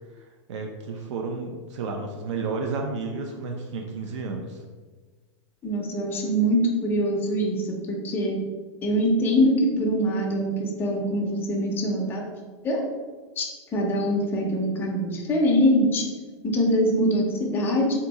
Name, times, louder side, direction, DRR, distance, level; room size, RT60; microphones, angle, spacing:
voice 1, 0.5-4.6, right 4 dB, 85° right, 2 dB, 0.5 m, -31 dB
voice 2, 5.6-8.4 8.8-12.2 12.6-12.8 13.4-13.5 13.7-16.0 16.4-17.9, equal, 15° left, -1 dB, 0.6 m, -23 dB
3.6 x 2.7 x 4.0 m, 1.4 s
supercardioid pair, 165°, 15 cm